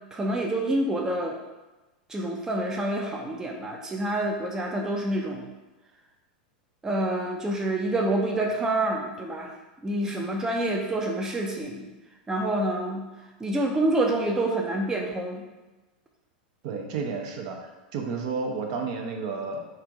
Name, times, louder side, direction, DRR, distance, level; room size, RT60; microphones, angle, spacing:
voice 1, 0.1-1.4 2.1-5.5 6.8-9.5 9.8-11.9 12.3-13.0 13.4-15.5, right 1 dB, 10° right, 1 dB, 0.5 m, -27 dB
voice 2, 16.6-19.6, right 4 dB, 55° right, 3 dB, 0.8 m, -31 dB
4.5 x 2.6 x 4.6 m, 1.1 s
hypercardioid pair, 110°, 5 cm